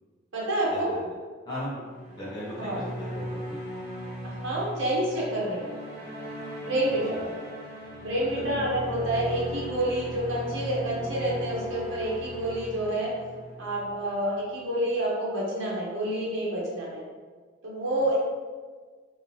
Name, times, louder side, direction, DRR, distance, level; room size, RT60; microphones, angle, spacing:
voice 1, 0.3-0.9 2.6-2.9 4.2-5.6 6.6-7.1 8.0-13.1 13.6-17.0 17.6-18.2, right 1 dB, 75° right, -5 dB, 1.1 m, -28 dB
voice 2, 1.5-1.8 2.2-2.7 3.0-3.6 8.3-8.7, equal, 20° left, -10 dB, 0.7 m, -36 dB
sound 1, 1.8-14.3, equal, 55° left, 1.1 m, -38 dB
3.7 x 2.6 x 2.9 m, 1.5 s
head